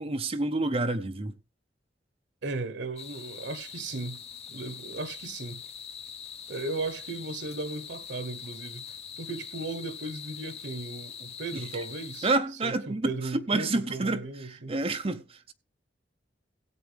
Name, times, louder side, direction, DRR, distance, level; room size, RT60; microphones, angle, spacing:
voice 1, 0.0-1.3 12.2-15.5, right 2 dB, 35° right, 0.7 m, -29 dB
voice 2, 2.4-4.2 4.5-5.6 6.5-12.3 12.6-14.8, right 3 dB, 90° right, 1.0 m, -36 dB
sound 1, 3.0-12.4, left 7 dB, 35° left, 0.9 m, -43 dB
17.0 x 8.2 x 3.4 m
head